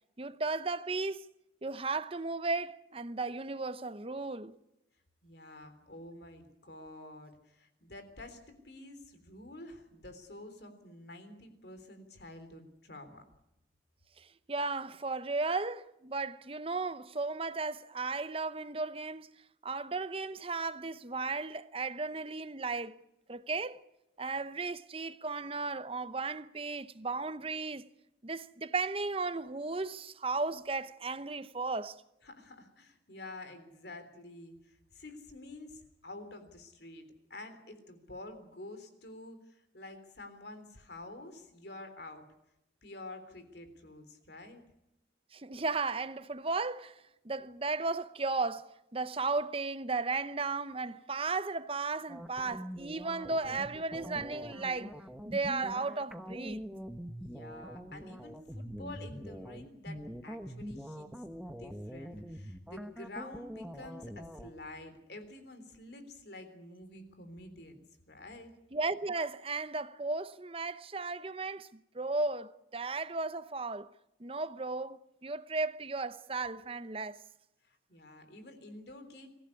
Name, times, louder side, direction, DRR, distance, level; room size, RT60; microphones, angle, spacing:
voice 1, 0.2-1.3 1.6-4.5 14.5-19.3 19.6-22.9 23.3-23.8 24.2-27.8 28.2-32.0 45.3-46.9 47.2-54.9 55.2-56.6 68.7-71.7 71.9-73.9 74.2-77.2, right 3 dB, 30° right, 0.8 m, -35 dB
voice 2, 5.2-13.3 32.2-37.1 37.3-42.2 42.8-44.6 57.2-61.1 61.4-67.8 68.1-68.5 77.6-79.3, left 2 dB, 55° left, 3.5 m, -49 dB
sound 1, 52.1-64.5, equal, 5° right, 1.1 m, -44 dB
24.0 x 15.5 x 9.8 m
head